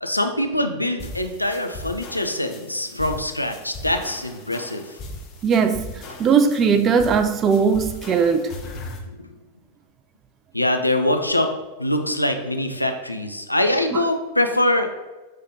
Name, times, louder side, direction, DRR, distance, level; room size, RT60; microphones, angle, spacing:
voice 1, 0.0-5.0 9.2-9.3 10.5-11.5 11.8-14.9, left 1 dB, 85° left, 0.4 m, -23 dB
sound 1, 1.0-9.0, left 2 dB, 35° left, 0.6 m, -38 dB
voice 2, 5.4-8.5 13.9-14.0, right 6 dB, 30° right, 0.4 m, -19 dB
5.6 x 3.2 x 2.6 m
figure-of-eight pair, 90°, 0 cm